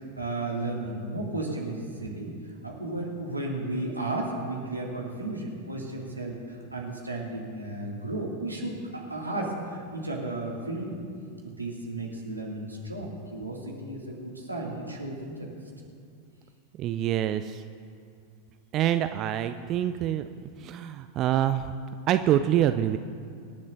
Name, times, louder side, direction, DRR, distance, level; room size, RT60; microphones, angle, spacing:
voice 1, 0.2-11.0 11.4-15.5, right 2 dB, 85° right, -2 dB, 2.4 m, -34 dB
voice 2, 16.8-17.6 18.7-20.3 20.6-21.7 22.1-23.0, right 11 dB, 35° right, 10 dB, 0.4 m, -25 dB
25.5 x 10.5 x 2.7 m, 2.3 s
figure-of-eight pair, 90°, 0 cm